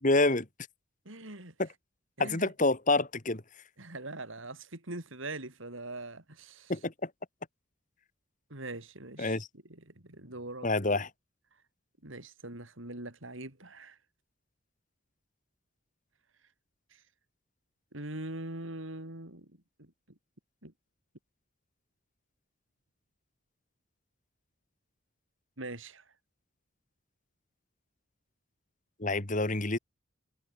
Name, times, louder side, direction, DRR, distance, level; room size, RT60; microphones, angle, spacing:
voice 1, 0.0-0.5 1.6-1.7 2.2-3.4 6.7-7.1 9.2-9.5 10.6-11.1 29.0-29.8, left 2 dB, 40° left, 2.0 m, -27 dB
voice 2, 1.0-1.5 2.2-2.5 3.8-6.7 8.5-9.4 9.7-10.7 12.0-14.0 16.9-17.0 17.9-19.9 20.6-20.7 25.6-26.1, right 2 dB, 75° right, 4.3 m, -42 dB
head